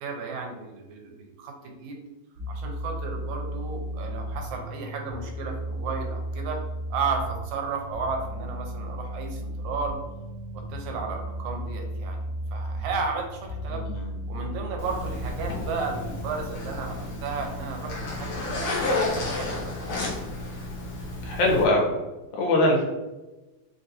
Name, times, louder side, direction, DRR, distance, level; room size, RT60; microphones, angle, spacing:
voice 1, 0.0-2.0 2.5-6.6 6.9-10.0 10.5-13.8 14.3-18.3 18.6-19.9, right 4 dB, 85° right, 2 dB, 2.0 m, -33 dB
sound 1, 2.4-16.2, right 1 dB, 65° right, 1.2 m, -35 dB
voice 2, 13.7-14.1 21.2-22.0 22.3-22.8, left 1 dB, 85° left, -1 dB, 2.3 m, -22 dB
Zipper (clothing), 14.8-21.6, left 2 dB, 65° left, 1.4 m, -31 dB
5.0 x 2.7 x 2.5 m, 1.1 s
omnidirectional pair, 3.3 m